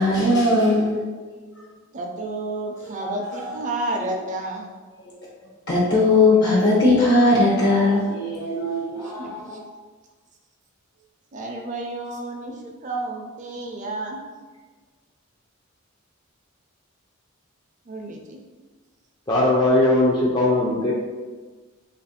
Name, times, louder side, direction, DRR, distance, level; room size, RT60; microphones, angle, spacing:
voice 1, 0.0-1.4 3.0-3.5 5.7-9.6, left 2 dB, 50° left, -5 dB, 0.7 m, -19 dB
voice 2, 1.9-4.8 8.9-9.6 11.3-14.2 17.9-18.4, right 2 dB, 35° right, 1 dB, 0.5 m, -31 dB
voice 3, 19.3-20.9, left 2 dB, 20° left, -5 dB, 0.4 m, -19 dB
3.1 x 2.5 x 4.1 m, 1.4 s
head